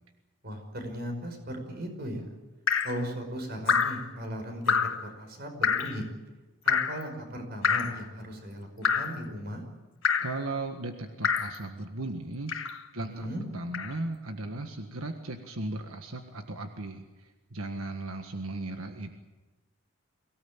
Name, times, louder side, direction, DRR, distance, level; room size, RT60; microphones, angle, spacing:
voice 1, 0.4-2.3 2.8-6.0 6.7-9.6 13.0-13.4, equal, 45° right, 5 dB, 5.3 m, -37 dB
Drip, 2.7-3.0 3.7-4.0 4.7-5.0 5.6-6.0 6.7-7.0 7.6-8.0 8.8-9.2 10.0-10.4 11.2-11.6 12.5-12.8 13.7-13.9, left 6 dB, 70° left, 1.5 m, -26 dB
voice 2, 10.2-12.5 12.9-13.3 13.5-19.1, right 2 dB, 85° right, 5 dB, 1.6 m, -36 dB
24.0 x 17.5 x 8.9 m, 1.2 s
head